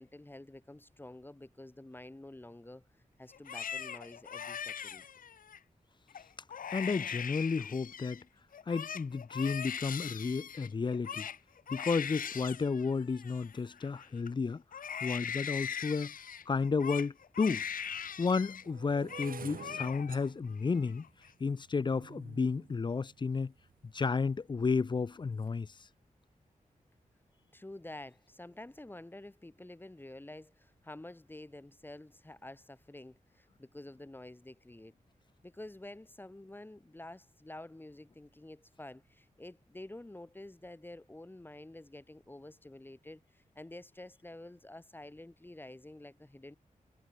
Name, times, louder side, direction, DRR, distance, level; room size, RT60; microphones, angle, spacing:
voice 1, 0.0-2.8 3.2-5.0 27.5-34.9 35.4-46.6, left 1 dB, 15° left, 2.1 m, -49 dB
Crying sobbing, 3.3-5.6 6.1-6.2 6.5-8.2 8.5-14.3 14.7-18.7 18.9-19.3 19.6-20.3 20.6-21.3, left 8 dB, 80° left, 0.7 m, -41 dB
voice 2, 6.7-8.2 8.7-11.3 11.7-14.6 15.0-16.1 16.5-17.6 18.2-21.1 21.4-23.5 23.9-25.7, left 4 dB, 35° left, 0.5 m, -32 dB
sound 1, 16.9-17.0 17.8-23.9 24.6-25.0 25.2-25.6, right 7 dB, 90° right, 2.0 m, -51 dB
wide cardioid pair, 145°, 14 cm